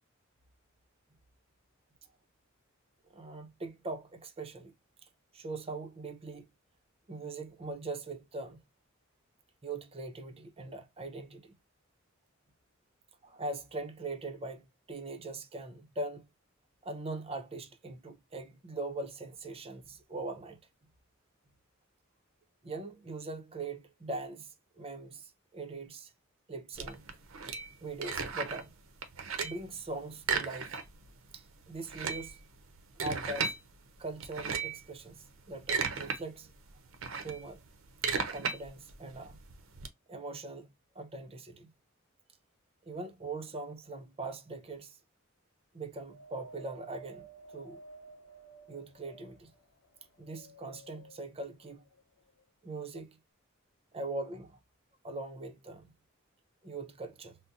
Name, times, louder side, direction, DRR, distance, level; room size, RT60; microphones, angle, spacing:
voice 1, 3.1-4.7 5.0-5.1 5.3-6.5 7.1-8.6 9.6-11.6 13.2-16.3 16.8-20.6 22.6-26.1 26.5-27.1 27.8-28.8 29.4-30.8 31.3-32.4 33.0-33.6 34.0-36.5 37.2-37.6 38.3-39.4 40.1-40.7 40.9-41.7 42.9-45.0 45.7-47.3 47.5-47.8 48.7-49.5 50.2-51.8 52.6-53.2 53.9-54.6 55.0-55.9 56.6-57.4, right 2 dB, 30° right, 0.6 m, -41 dB
sound 1, 26.8-28.7 29.0-29.7 30.2-31.1 31.4-31.5 31.8-33.6 34.2-34.8 35.4-36.2 36.5-39.9, right 5 dB, 75° right, 0.7 m, -35 dB
Wind, 46.1-49.6 50.2-51.2 52.0-52.1, right 3 dB, 65° left, 0.8 m, -52 dB
3.9 x 2.1 x 2.4 m
head